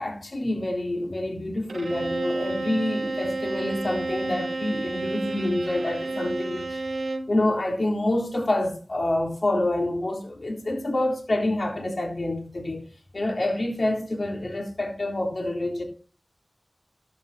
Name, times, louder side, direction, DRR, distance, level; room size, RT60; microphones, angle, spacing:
voice 1, 0.0-6.8 7.3-12.8 13.1-15.8, left 1 dB, 65° left, 3.4 m, -27 dB
Bowed string instrument, 1.7-7.4, right 2 dB, 85° right, 1.1 m, -31 dB
14.0 x 10.5 x 2.8 m
wide cardioid pair, 60°, 0 cm